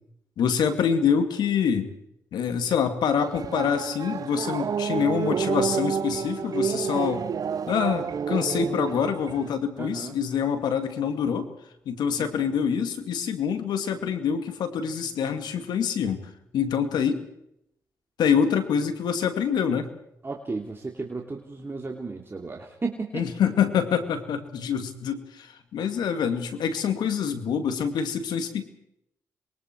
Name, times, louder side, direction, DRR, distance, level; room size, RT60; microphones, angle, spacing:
voice 1, 0.4-1.9 2.3-7.2 7.7-11.5 11.9-16.2 16.5-17.3 18.2-19.9 23.1-28.6, left 7 dB, 80° left, 8 dB, 2.4 m, -26 dB
sound 1, 3.2-9.5, right 7 dB, 55° right, 0.8 m, -29 dB
voice 2, 9.8-10.1 12.2-12.3 20.2-23.2, right 3 dB, 30° right, 1 dB, 3.0 m, -34 dB
27.0 x 22.5 x 4.7 m, 0.78 s
supercardioid pair, 55°, 7 cm